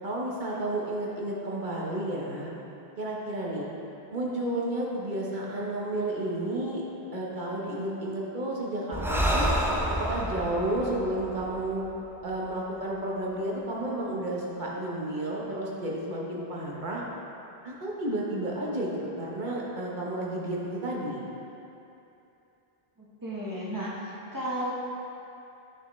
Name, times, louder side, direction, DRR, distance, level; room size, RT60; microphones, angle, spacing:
voice 1, 0.0-2.5 3.0-3.7 4.1-6.8 7.1-9.5 9.9-11.8 12.2-17.0 17.6-18.9 19.2-21.2, right 1 dB, 50° right, -4 dB, 1.2 m, -31 dB
Breathing, 8.9-12.5, equal, 5° right, 0.4 m, -29 dB
voice 2, 23.0-24.7, right 1 dB, 20° right, -7 dB, 1.3 m, -34 dB
10.0 x 4.8 x 3.2 m, 2.9 s
omnidirectional pair, 1.1 m